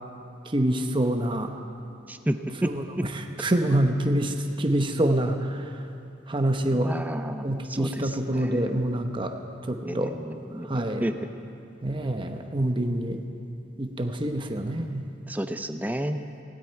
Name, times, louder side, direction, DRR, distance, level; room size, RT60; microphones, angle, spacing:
voice 1, 0.5-1.5 2.5-5.7 6.3-6.9 7.4-9.3 9.7-10.1 10.7-11.1 11.8-13.2 13.8-15.1, right 1 dB, 25° right, 5 dB, 0.9 m, -26 dB
voice 2, 6.8-7.9 8.4-8.7 9.8-10.1 10.5-10.7 11.0-11.1 15.3-16.2, right 1 dB, 10° right, 8 dB, 0.5 m, -29 dB
18.0 x 16.5 x 4.6 m, 2.7 s
head